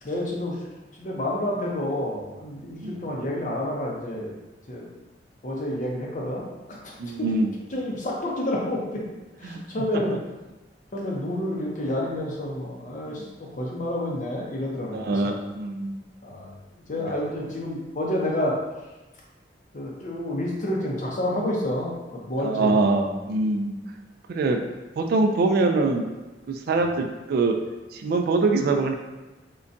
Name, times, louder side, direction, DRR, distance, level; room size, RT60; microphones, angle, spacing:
voice 1, 0.0-0.6 1.0-4.4 4.7-4.8 5.4-6.4 6.7-6.9 7.2-7.3 7.7-9.0 9.4-10.1 10.9-13.2 13.5-15.4 16.2-18.6 19.7-22.8, left 1 dB, 45° left, -2 dB, 0.6 m, -29 dB
voice 2, 7.0-7.5 9.4-9.6 13.1-13.3 14.9-16.0 17.1-17.2 22.4-23.8 24.3-24.6 25.0-26.1 26.5-27.6 27.9-28.9, right 3 dB, 60° right, 4 dB, 0.3 m, -24 dB
3.8 x 2.2 x 2.5 m, 1.1 s
head